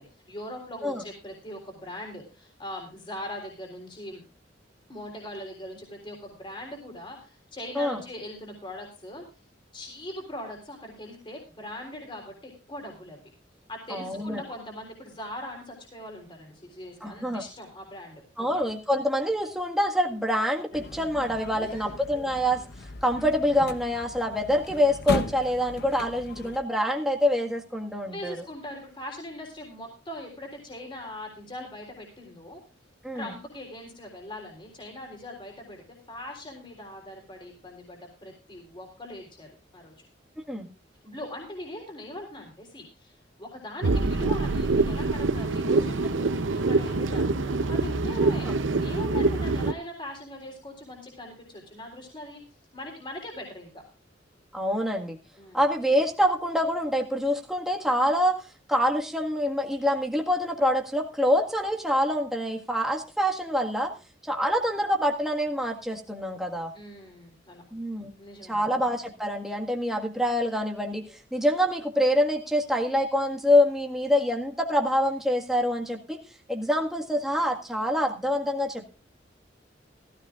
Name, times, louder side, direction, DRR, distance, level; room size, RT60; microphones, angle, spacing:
voice 1, 0.0-4.2 4.9-9.2 9.7-13.2 13.7-18.6 21.5-21.9 28.1-32.6 33.1-35.8 36.1-39.5 39.7-39.9 41.0-52.4 52.7-53.8 55.4-55.6 66.7-67.6 68.2-68.7, left 1 dB, 25° left, 0 dB, 3.6 m, -41 dB
voice 2, 13.9-14.4 17.0-17.4 18.4-22.6 23.0-28.3 33.0-33.3 40.5-40.7 48.5-48.6 54.5-55.2 55.5-58.4 58.7-63.9 64.2-66.7 67.7-68.1 68.4-76.2 76.5-78.8, equal, ahead, 0 dB, 1.7 m, -26 dB
sound 1, 20.7-26.6, left 2 dB, 60° left, 0.9 m, -37 dB
sound 2, 43.8-49.7, right 3 dB, 90° right, 0.8 m, -25 dB
16.0 x 15.0 x 2.5 m, 0.34 s
head